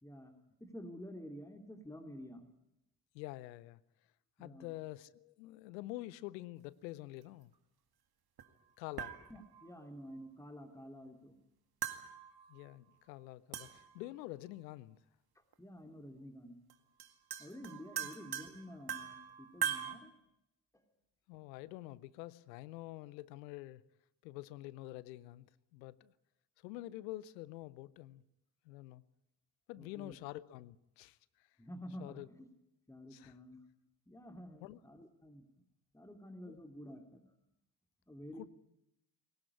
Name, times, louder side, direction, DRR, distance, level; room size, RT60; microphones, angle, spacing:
voice 1, 0.0-0.3 0.6-2.5 4.4-4.7 9.3-11.4 15.3-16.6 17.4-20.1 20.7-20.8 29.8-30.2 31.6-32.5 32.9-33.6 34.1-35.5 35.9-37.2 38.1-38.5, equal, 5° left, 3.0 m, -50 dB
voice 2, 3.1-3.8 4.4-7.5 8.8-9.2 12.5-15.0 21.3-23.8 24.2-26.1 26.6-28.2 28.6-29.0 29.7-31.5 32.0-32.3 33.1-33.4 34.6-34.8 36.4-36.6 38.3-38.5, left 17 dB, 80° left, 0.8 m, -47 dB
sound 1, 8.4-8.5 9.0-9.7 11.8-12.7 13.5-14.1 15.5-15.6 16.7-16.8 17.0-19.9, right 9 dB, 45° right, 2.1 m, -41 dB
21.5 x 18.0 x 9.8 m
hypercardioid pair, 45°, 50 cm